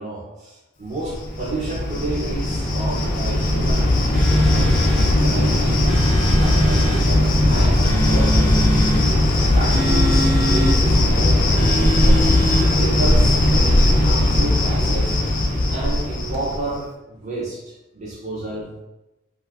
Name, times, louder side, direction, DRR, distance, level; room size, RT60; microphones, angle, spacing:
voice 1, 0.0-6.0 6.4-8.9 9.5-12.3 12.7-15.2 15.7-18.7, right 2 dB, 35° right, -7 dB, 0.6 m, -31 dB
Cricket, 1.0-16.7, left 1 dB, 40° left, 0.5 m, -18 dB
sound 1, 4.1-5.1 5.9-7.1 7.8-9.0 9.7-10.8 11.6-12.7, equal, 80° right, 0.8 m, -25 dB
2.6 x 2.3 x 3.4 m, 0.98 s
head